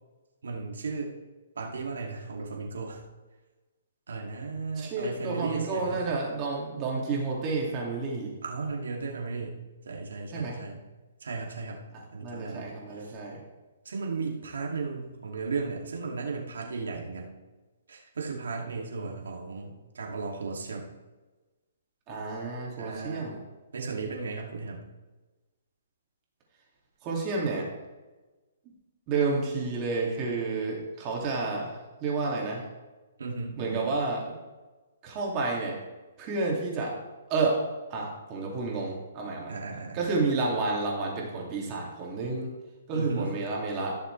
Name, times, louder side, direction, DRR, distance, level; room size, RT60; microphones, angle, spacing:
voice 1, 0.4-1.1 1.6-3.0 4.1-6.1 8.4-9.6 9.8-10.8 11.2-11.8 12.1-12.6 12.9-13.1 13.8-17.3 17.9-20.9 22.8-23.3 23.7-24.8 33.2-33.9 39.5-40.0 42.9-43.3, right 4 dB, 85° right, 0 dB, 2.6 m, -35 dB
voice 2, 4.8-8.3 10.3-10.6 11.9-13.4 22.1-23.4 27.0-27.7 29.1-32.6 33.6-34.3 35.0-35.8 36.2-37.0 37.3-39.5 39.9-42.5 42.9-44.0, right 3 dB, 25° right, -2 dB, 2.6 m, -30 dB
15.5 x 6.7 x 3.4 m, 1.2 s
hypercardioid pair, 160°, 0 cm